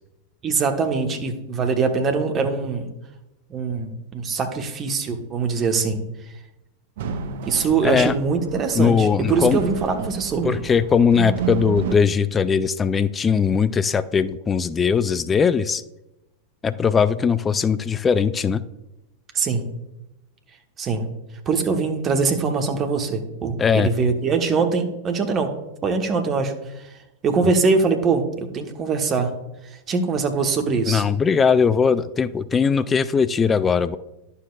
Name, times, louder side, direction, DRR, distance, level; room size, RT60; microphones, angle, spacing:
voice 1, 0.4-2.9 3.5-6.0 7.5-10.6 19.3-19.6 20.8-21.0 21.5-25.5 25.8-26.5 27.2-28.2 28.5-29.3 29.9-31.0, right 4 dB, 25° right, 5 dB, 1.1 m, -22 dB
sound 1, 7.0-12.0, right 8 dB, 55° right, 0.6 m, -31 dB
voice 2, 7.8-8.1 8.7-9.6 10.4-15.8 16.6-18.6 23.6-23.9 30.9-34.0, left 6 dB, 20° left, 14 dB, 0.3 m, -20 dB
11.0 x 7.0 x 2.4 m, 0.92 s
figure-of-eight pair, 90°, 0 cm